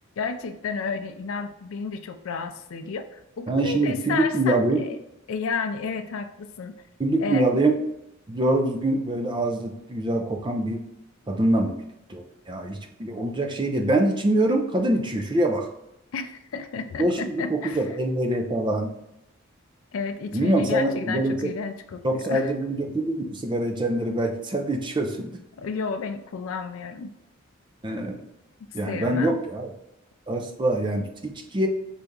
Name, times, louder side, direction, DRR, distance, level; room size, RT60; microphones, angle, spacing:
voice 1, 0.2-5.0 5.3-6.7 7.2-7.5 16.1-17.8 19.9-22.5 25.6-27.1 28.8-29.4, left 5 dB, 70° left, 9 dB, 0.4 m, -31 dB
voice 2, 3.5-4.8 7.0-7.8 8.3-10.8 11.3-11.7 12.1-15.7 17.0-18.9 20.3-21.5 22.0-25.3 27.8-28.2 28.7-29.7 30.3-31.7, right 1 dB, 20° right, 4 dB, 0.5 m, -24 dB
4.0 x 3.4 x 3.6 m, 0.84 s
head